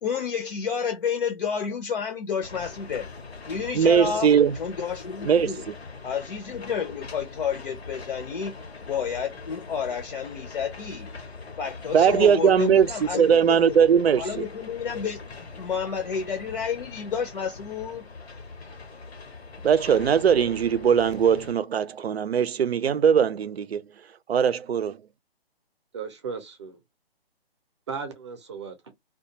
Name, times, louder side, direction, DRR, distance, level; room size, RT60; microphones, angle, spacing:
voice 1, 0.0-3.1 3.5-4.3 4.6-5.6 6.0-8.5 8.8-11.1 11.6-13.8 14.2-15.2 15.6-18.0, left 6 dB, 60° left, 0.6 m, -30 dB
sound 1, 2.4-21.5, left 4 dB, 85° left, 0.9 m, -42 dB
voice 2, 3.7-4.6 5.2-5.5 11.9-14.4 19.6-23.8 24.3-25.0, right 7 dB, 80° right, 0.5 m, -20 dB
voice 3, 25.9-26.8 27.9-28.9, right 5 dB, 30° right, 0.5 m, -36 dB
2.3 x 2.2 x 2.8 m
hypercardioid pair, 150°, 31 cm